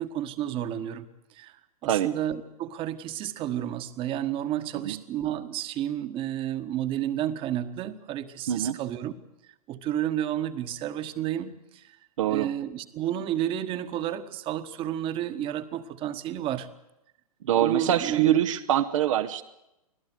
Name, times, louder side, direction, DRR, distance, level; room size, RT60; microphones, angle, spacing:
voice 1, 0.0-9.1 9.7-12.0 12.3-16.7 17.6-18.4, right 11 dB, 25° right, 10 dB, 1.5 m, -31 dB
voice 2, 8.5-8.8 12.2-12.5 17.4-19.4, right 11 dB, 55° right, 7 dB, 1.1 m, -24 dB
25.0 x 17.0 x 8.2 m, 0.90 s
hypercardioid pair, 120°, 20 cm